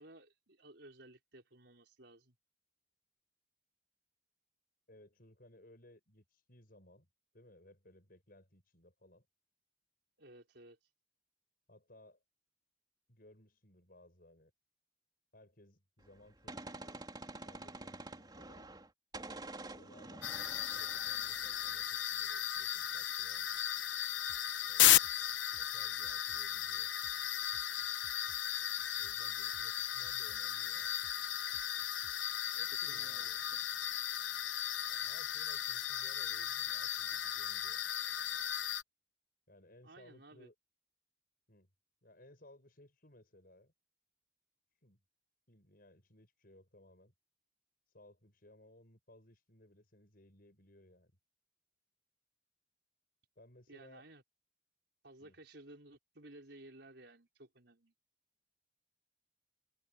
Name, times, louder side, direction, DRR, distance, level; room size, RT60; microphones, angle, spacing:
voice 1, 0.0-2.4 10.2-10.8 32.6-33.6 39.8-40.5 53.7-54.2 55.0-57.9, right 1 dB, 65° right, 5.4 m, -56 dB
voice 2, 4.9-7.1 7.3-9.3 11.7-12.2 13.1-14.5 15.3-17.1 17.4-18.7 19.7-20.3 20.6-23.6 24.7-26.9 28.9-31.0 32.5-33.4 34.9-37.8 39.5-40.5 41.5-41.7 42.0-43.7 44.8-45.0 45.5-47.1 47.9-51.1 53.4-54.0 55.2-55.3, left 1 dB, 50° left, 7.3 m, -61 dB
Gunshot gunfire, 16.0-18.9 19.1-21.9, right 2 dB, 25° right, 3.8 m, -48 dB
sound 1, 20.2-38.8, left 11 dB, 85° left, 1.0 m, -35 dB
sound 2, 24.3-32.2, right 1 dB, 45° right, 6.1 m, -63 dB
head